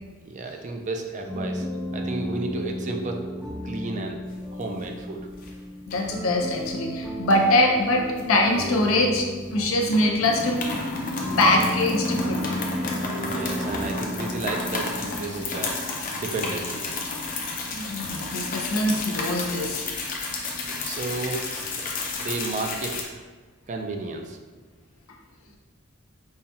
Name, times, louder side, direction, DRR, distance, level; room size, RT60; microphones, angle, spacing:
voice 1, 0.2-1.7 1.9-3.3 3.6-4.2 4.5-5.3 13.1-15.8 16.2-16.8 20.8-21.5 22.1-23.1 23.7-24.4, right 3 dB, 35° right, 4 dB, 0.4 m, -32 dB
sound 1, 1.3-15.3, equal, 5° left, 0.7 m, -34 dB
sound 2, 4.3-5.0 5.3-5.5 5.9-6.7 7.3-9.2 9.5-9.6 9.9-23.0, left 2 dB, 40° left, 0.5 m, -31 dB
voice 2, 5.9-10.6 11.4-12.4 13.7-13.8 17.7-19.8, left 1 dB, 85° left, 1 dB, 0.6 m, -23 dB
5.5 x 2.2 x 2.7 m, 1.3 s
head